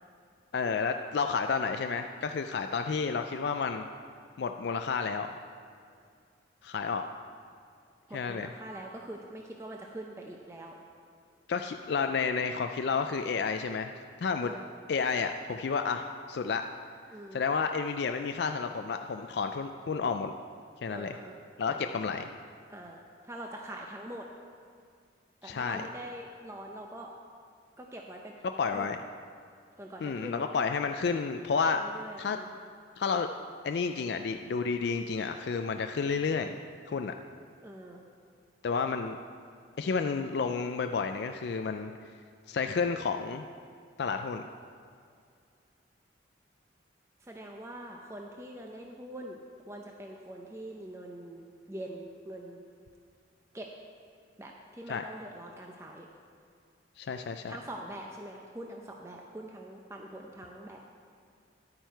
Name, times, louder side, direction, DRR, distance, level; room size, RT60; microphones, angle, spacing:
voice 1, 0.5-3.8 4.4-5.3 6.6-7.1 8.1-8.5 11.5-13.9 14.2-14.5 14.9-16.6 17.3-20.3 20.8-21.1 21.6-22.3 25.4-25.8 28.6-29.0 30.0-31.8 32.2-32.4 33.0-33.3 33.6-36.6 36.9-37.1 38.6-39.2 39.8-41.9 42.5-43.4 44.0-44.4 54.9-55.0 57.0-57.5, left 5 dB, 60° left, 6 dB, 0.4 m, -31 dB
voice 2, 8.1-10.8 14.4-14.6 17.1-17.4 20.9-21.4 21.7-21.9 22.7-24.3 25.4-27.1 27.8-28.3 28.6-28.9 29.8-30.5 31.7-32.5 37.6-38.0 47.2-52.6 53.5-53.7 54.4-56.1 57.5-60.9, right 1 dB, 15° right, 0 dB, 0.6 m, -44 dB
11.0 x 8.8 x 4.6 m, 2.2 s
head